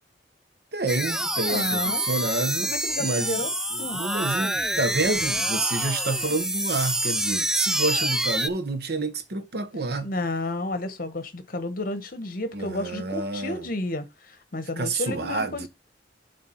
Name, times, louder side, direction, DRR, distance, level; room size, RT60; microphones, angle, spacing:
voice 1, 0.7-2.7 3.0-3.4 3.7-10.1 12.5-13.7 14.8-15.7, right 3 dB, 65° right, 1.0 m, -28 dB
sound 1, 0.9-8.5, right 1 dB, 5° right, 0.3 m, -27 dB
voice 2, 1.5-2.0 2.6-3.5 3.8-4.0 10.0-15.7, left 2 dB, 55° left, 1.2 m, -31 dB
7.6 x 3.5 x 5.7 m
head